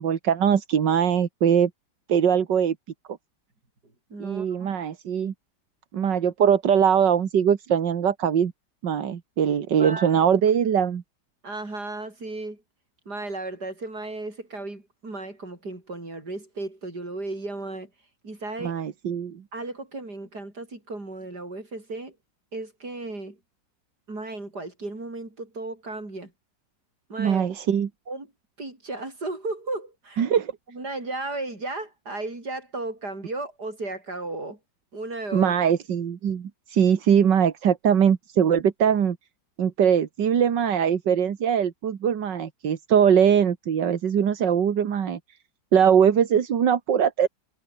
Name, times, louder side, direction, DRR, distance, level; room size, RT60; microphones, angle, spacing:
voice 1, 0.0-1.7 2.1-2.8 4.2-5.3 5.9-8.5 8.8-11.0 18.6-19.4 27.2-27.9 30.2-30.5 35.3-39.2 39.6-45.2 45.7-47.3, right 8 dB, 90° right, 2.2 m, -21 dB
voice 2, 4.1-4.7 9.8-10.2 11.4-12.6 13.0-17.9 18.2-18.8 19.5-22.1 22.5-23.4 24.1-26.3 27.1-27.5 28.1-28.3 28.6-30.2 30.7-34.6 34.9-35.5, right 2 dB, 65° right, 6.9 m, -35 dB
omnidirectional pair, 1.8 m